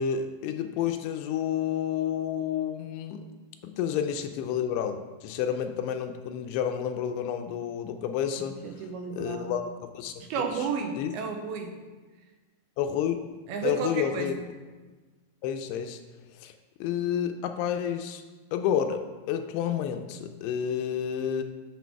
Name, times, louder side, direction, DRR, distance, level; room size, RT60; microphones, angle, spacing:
voice 1, 0.0-3.2 3.6-10.2 10.6-10.7 11.0-11.1 12.8-14.3 15.4-16.0 16.3-16.5 16.8-18.2 18.5-21.4, left 9 dB, 85° left, 7 dB, 2.5 m, -30 dB
voice 2, 8.6-9.6 10.2-11.8 13.5-14.4, right 5 dB, 80° right, 4 dB, 2.4 m, -32 dB
8.3 x 6.3 x 4.6 m, 1.3 s
omnidirectional pair, 4.8 m